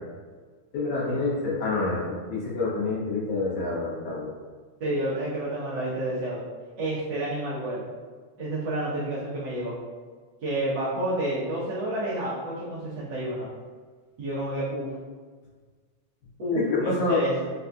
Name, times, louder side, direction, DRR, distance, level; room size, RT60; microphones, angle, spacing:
voice 1, 0.7-2.0 2.3-4.3 16.5-17.2, left 3 dB, 90° left, -7 dB, 2.7 m, -27 dB
voice 2, 4.8-6.4 6.8-7.9 8.4-9.8 10.4-13.5 14.2-14.9 16.4-17.4, right 1 dB, 70° right, -10 dB, 1.0 m, -29 dB
5.6 x 2.6 x 2.3 m, 1.5 s
omnidirectional pair, 3.3 m